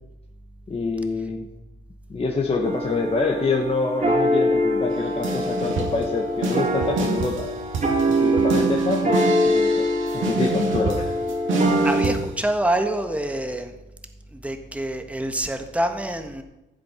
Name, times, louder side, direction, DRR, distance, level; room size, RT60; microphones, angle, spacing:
voice 1, 0.7-1.5 2.1-7.5 8.0-9.9 10.1-11.2, left 3 dB, 30° left, 0 dB, 1.6 m, -26 dB
sound 1, 2.6-12.2, equal, 40° right, 3.3 m, -23 dB
sound 2, 5.2-6.0 6.4-12.2, right 3 dB, 75° right, 2.6 m, -27 dB
voice 2, 11.8-13.7 14.3-16.4, right 1 dB, 5° right, 6 dB, 1.5 m, -26 dB
14.5 x 7.6 x 5.8 m, 0.95 s
cardioid pair, 90°, 20 cm